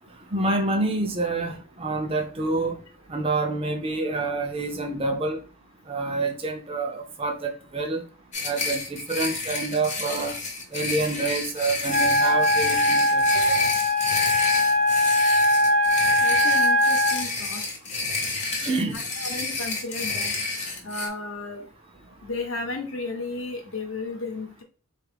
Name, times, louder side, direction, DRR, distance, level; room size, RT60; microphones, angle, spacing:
voice 1, 0.3-2.8 3.1-5.4 5.9-8.0 8.4-10.4 10.7-13.2 18.6-19.0, right 3 dB, 25° right, 0.4 m, -27 dB
sound 1, 8.3-21.1, left 3 dB, 35° left, 0.7 m, -30 dB
Wind instrument woodwind instrument, 11.9-17.2, left 1 dB, 80° right, 0.7 m, -21 dB
voice 2, 13.3-13.8 16.2-17.6 18.9-20.4 20.8-21.7 22.2-24.6, left 2 dB, 70° left, 0.8 m, -33 dB
3.6 x 2.3 x 3.3 m
head